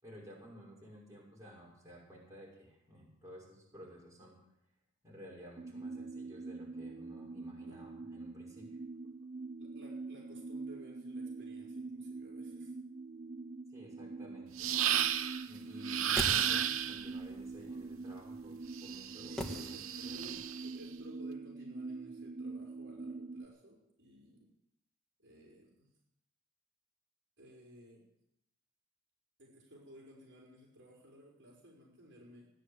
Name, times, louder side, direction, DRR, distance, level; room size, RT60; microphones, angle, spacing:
voice 1, 0.0-4.4 5.0-8.7 13.7-14.7 15.5-20.2, equal, 15° right, -4 dB, 6.1 m, -54 dB
sound 1, 5.6-23.5, right 3 dB, 35° right, 0.5 m, -44 dB
voice 2, 9.6-12.8 19.3-24.5 25.2-25.9 27.4-28.0 29.4-32.5, equal, 55° right, -2 dB, 4.9 m, -56 dB
sound 2, 14.6-15.4 15.8-17.1 18.8-20.7, right 10 dB, 80° right, 0.9 m, -33 dB
sound 3, 15.8-17.0 19.4-20.3 20.5-20.6, equal, ahead, 1.8 m, -41 dB
17.0 x 9.9 x 8.5 m, 0.80 s
head